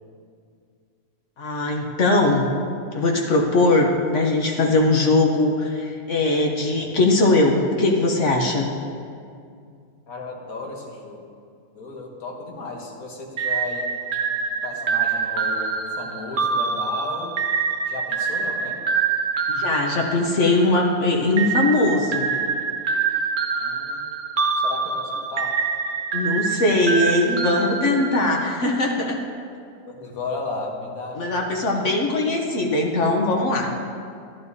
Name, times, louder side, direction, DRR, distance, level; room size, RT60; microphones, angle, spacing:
voice 1, 1.4-2.5 2.9-8.7 19.5-22.3 26.1-29.2 31.2-33.7, left 2 dB, 60° left, 0 dB, 1.1 m, -20 dB
voice 2, 10.1-11.3 11.7-13.9 14.4-17.4 17.9-18.8 20.2-20.3 23.6-24.0 24.6-25.6 29.9-31.8, left 3 dB, 80° left, 0 dB, 1.7 m, -34 dB
sound 1, 13.4-20.8 21.4-28.6, right 5 dB, 55° right, 0.5 m, -25 dB
12.0 x 11.5 x 2.7 m, 2.3 s
omnidirectional pair, 1.5 m